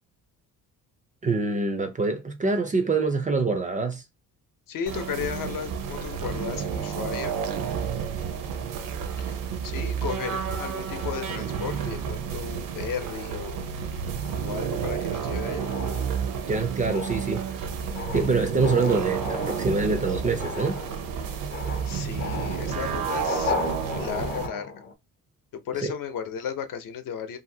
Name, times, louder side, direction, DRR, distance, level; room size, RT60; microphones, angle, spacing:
voice 1, 1.2-4.0 16.5-17.4 18.1-20.8 25.8-25.9, right 3 dB, 25° right, 0.3 m, -25 dB
voice 2, 4.7-7.4 9.2-9.3 9.6-13.7 14.4-15.7 21.9-23.5 24.0-24.7 25.6-27.4, left 7 dB, 65° left, 0.7 m, -34 dB
sound 1, 4.9-24.5, right 7 dB, 65° right, 0.6 m, -31 dB
sound 2, 7.1-8.9 9.6-9.8 10.1-10.5 10.9-12.2 12.6-12.9 13.4-24.9, left 5 dB, 30° left, 0.5 m, -38 dB
2.7 x 2.7 x 2.6 m
cardioid pair, 155°, 35 cm